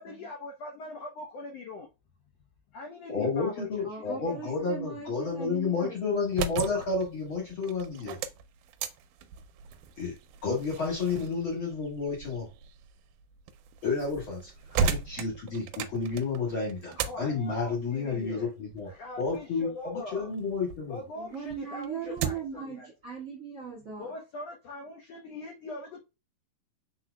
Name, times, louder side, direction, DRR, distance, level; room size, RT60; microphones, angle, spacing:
voice 1, 0.0-1.9 2.7-3.7 4.0-4.5 17.0-18.5 18.9-20.3 20.9-22.9 24.0-26.0, left 3 dB, 75° left, 1 dB, 1.4 m, -42 dB
voice 2, 3.1-8.2 10.0-10.2 10.4-12.5 13.8-18.9 19.2-21.0, left 4 dB, 55° left, -3 dB, 1.5 m, -31 dB
voice 3, 3.8-6.1 21.1-24.1, right 6 dB, 40° right, -3 dB, 1.3 m, -39 dB
sound 1, 6.1-20.9 21.3-22.6, right 6 dB, 80° right, 1.9 m, -37 dB
4.8 x 4.2 x 2.2 m, 0.26 s
omnidirectional pair, 3.9 m